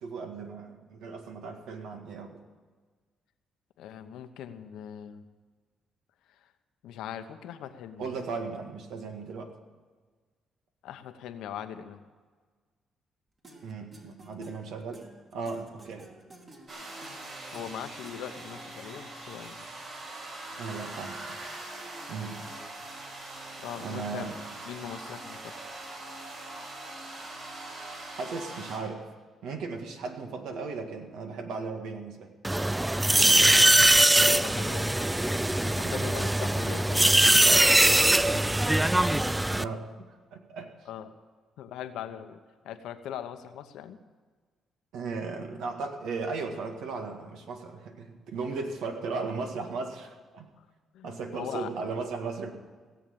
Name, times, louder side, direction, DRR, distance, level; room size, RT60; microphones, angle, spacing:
voice 1, 0.0-2.4 8.0-9.5 13.6-15.1 15.3-16.1 20.6-21.4 22.1-22.4 23.8-24.4 28.2-29.0 29.4-32.3 35.8-36.0 38.3-38.4 39.6-39.9 40.3-40.7 44.9-50.5 51.0-52.5, right 4 dB, 85° right, 4 dB, 1.9 m, -36 dB
voice 2, 3.8-5.2 6.3-6.5 6.8-8.1 10.8-12.0 17.5-19.7 23.6-24.3 24.7-25.5 33.4-35.0 35.2-37.6 39.5-39.8 40.8-41.1 41.6-42.4 42.6-44.0 50.9-51.7, left 9 dB, 90° left, 8 dB, 1.0 m, -41 dB
sound 1, 13.4-19.0, right 2 dB, 40° right, 2.5 m, -53 dB
sound 2, 16.7-28.8, right 2 dB, 55° right, 5.2 m, -42 dB
sound 3, 32.4-39.6, right 1 dB, 10° right, 0.3 m, -22 dB
17.0 x 7.4 x 8.7 m, 1.5 s
cardioid pair, 90°, 0 cm